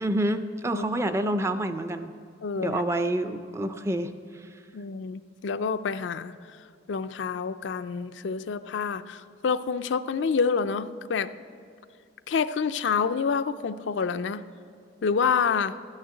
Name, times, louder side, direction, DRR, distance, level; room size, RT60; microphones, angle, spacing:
voice 1, 0.0-2.1 2.6-4.5, right 1 dB, 15° right, 10 dB, 0.4 m, -28 dB
voice 2, 2.4-2.8 4.7-6.3 6.9-11.3 12.3-14.4 15.0-15.7, left 5 dB, 75° left, 11 dB, 0.4 m, -27 dB
12.5 x 6.5 x 8.8 m, 2.3 s
head